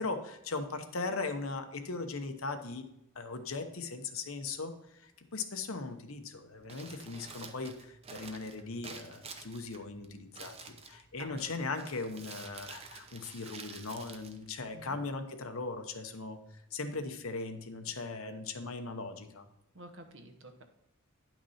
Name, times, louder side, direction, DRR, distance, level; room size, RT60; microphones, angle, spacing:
voice 1, 0.0-2.8 3.1-16.4 16.7-19.4, left 3 dB, 65° left, 7 dB, 0.9 m, -39 dB
Crumpling crinkling, 6.6-15.1, right 4 dB, 25° right, 0.7 m, -50 dB
voice 2, 19.7-20.6, right 1 dB, 55° right, 6 dB, 1.0 m, -50 dB
10.0 x 6.0 x 4.2 m, 0.84 s
head